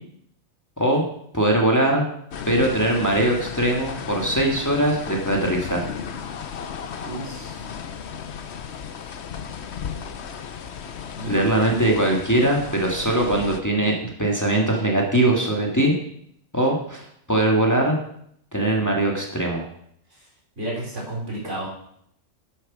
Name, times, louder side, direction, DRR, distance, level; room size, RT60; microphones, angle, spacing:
voice 1, 1.3-2.1 2.5-5.8 11.3-15.9 16.5-18.0 18.5-19.6, right 1 dB, 15° left, -1 dB, 1.8 m, -21 dB
sound 1, 2.3-13.6, left 7 dB, 65° left, 1.1 m, -34 dB
voice 2, 7.0-7.6 11.2-11.6 20.6-21.7, right 1 dB, 75° right, -3 dB, 4.4 m, -32 dB
9.5 x 7.9 x 6.2 m, 0.69 s
omnidirectional pair, 1.3 m